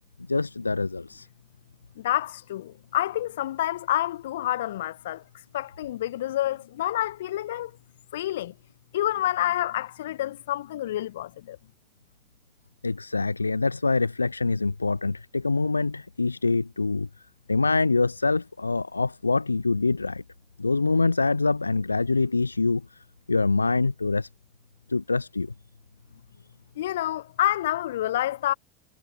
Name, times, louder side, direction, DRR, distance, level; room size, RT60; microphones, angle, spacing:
voice 1, 0.3-1.3 12.8-17.1 17.5-20.2 20.6-24.3 24.9-25.5, left 3 dB, 85° left, 0.3 m, -25 dB
voice 2, 2.0-5.2 5.5-7.7 8.1-8.5 8.9-11.6 26.8-28.5, left 13 dB, 65° left, 1.5 m, -28 dB
figure-of-eight pair, 75°, 0 cm